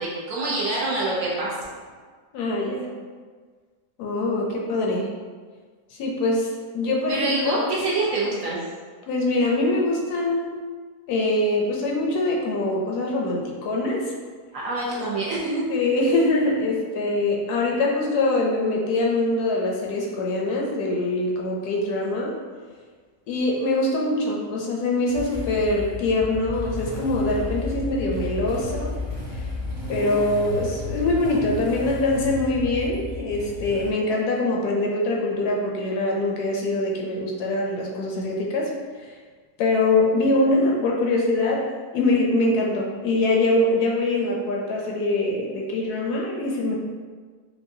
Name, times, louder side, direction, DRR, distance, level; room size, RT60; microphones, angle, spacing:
voice 1, 0.0-1.5 7.1-8.6 14.5-15.6, right 2 dB, 60° right, -6 dB, 1.1 m, -26 dB
voice 2, 2.3-2.9 4.0-5.1 5.9-6.5 6.7-7.6 9.1-10.5 11.1-14.1 15.7-22.4 23.3-29.0 29.9-38.7 39.0-39.1 39.6-41.6 41.9-46.8, left 2 dB, 75° left, -2 dB, 1.2 m, -23 dB
Motorcycle / Engine starting, 25.1-33.9, left 3 dB, 75° right, 1.6 m, -32 dB
4.7 x 2.3 x 2.6 m, 1.5 s
omnidirectional pair, 1.7 m